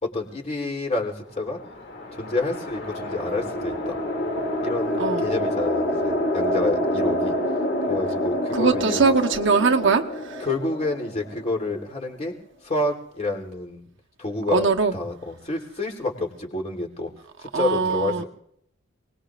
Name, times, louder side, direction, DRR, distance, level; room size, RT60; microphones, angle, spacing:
voice 1, 0.0-1.6 2.1-4.0 4.6-7.4 7.9-9.1 10.4-12.3 12.6-13.9 14.2-17.1 17.4-18.3, left 2 dB, 35° left, 1 dB, 3.3 m, -28 dB
sound 1, 1.5-11.9, left 1 dB, 55° left, 2.5 m, -27 dB
voice 2, 5.0-5.3 8.5-10.5 14.5-14.9 17.5-18.2, right 4 dB, 60° right, 3 dB, 1.1 m, -21 dB
29.0 x 20.0 x 2.5 m, 0.70 s
head